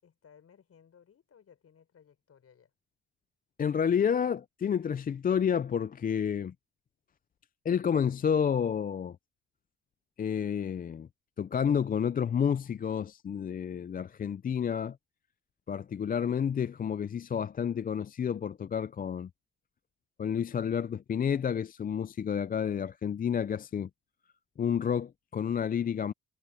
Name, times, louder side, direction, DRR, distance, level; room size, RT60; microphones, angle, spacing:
voice 1, 0.0-2.7, left 7 dB, 50° left, 5.6 m, -60 dB
voice 2, 3.6-6.5 7.7-9.2 10.2-11.1 11.4-15.0 15.7-19.3 20.2-23.9 24.6-26.1, left 7 dB, 30° left, 0.4 m, -30 dB
cardioid pair, 90°, 30 cm